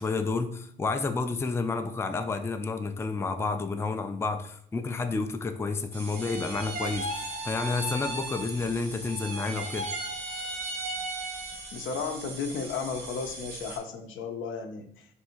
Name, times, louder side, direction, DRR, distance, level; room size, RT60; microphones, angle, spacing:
voice 1, 0.0-9.9, left 4 dB, 15° left, 7 dB, 0.4 m, -30 dB
sound 1, 5.9-13.8, right 3 dB, 70° right, 1.1 m, -43 dB
sound 2, 6.1-8.8 9.0-11.8, right 2 dB, 45° right, 0.7 m, -36 dB
voice 2, 11.7-14.8, left 5 dB, 80° left, 5 dB, 0.6 m, -34 dB
3.5 x 2.6 x 4.3 m, 0.67 s
cardioid pair, 90°, 20 cm